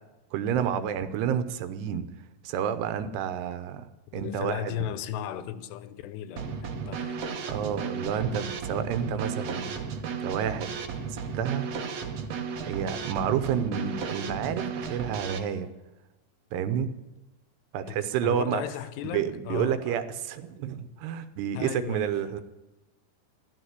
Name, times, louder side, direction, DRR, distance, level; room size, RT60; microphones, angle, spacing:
voice 1, 0.3-2.1 2.4-3.9 4.1-4.7 7.5-9.8 10.2-10.8 11.1-11.7 12.7-15.7 16.5-16.9 17.7-18.6 19.0-22.4, right 8 dB, 80° right, 3.0 m, -29 dB
voice 2, 4.1-7.3 17.8-20.0 21.5-22.1, left 11 dB, 85° left, 3.0 m, -36 dB
Drum kit / Snare drum, 6.4-15.4, right 5 dB, 65° right, 1.7 m, -34 dB
14.5 x 12.0 x 8.2 m
omnidirectional pair, 4.8 m